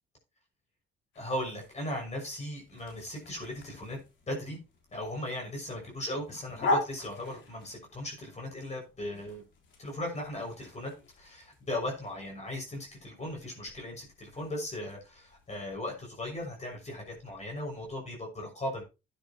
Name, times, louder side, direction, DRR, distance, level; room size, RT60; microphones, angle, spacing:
sound 1, 1.1-18.0, left 2 dB, 70° left, 3.9 m, -42 dB
voice 1, 1.1-4.0 4.3-4.6 4.9-9.4 9.8-18.8, left 1 dB, 35° left, 0 dB, 6.1 m, -37 dB
12.5 x 10.0 x 2.9 m, 0.28 s
cardioid pair, 90°, 20 cm